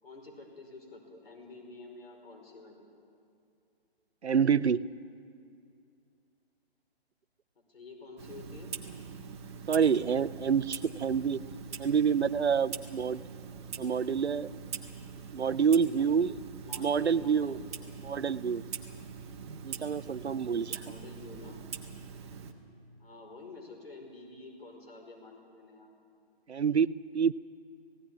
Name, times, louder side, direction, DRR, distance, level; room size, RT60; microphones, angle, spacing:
voice 1, 0.0-2.9 7.7-8.7 16.6-17.6 20.7-21.6 23.0-25.9, left 3 dB, 65° left, 1 dB, 5.2 m, -49 dB
voice 2, 4.2-4.9 9.7-11.4 11.8-13.2 13.8-14.5 15.3-16.4 16.8-17.6 18.0-18.6 19.6-20.8 26.5-27.3, right 6 dB, 90° right, 17 dB, 0.7 m, -27 dB
Clock, 8.2-22.5, right 6 dB, 25° right, 1.2 m, -43 dB
17.5 x 17.0 x 9.9 m, 2.5 s
figure-of-eight pair, 150°, 32 cm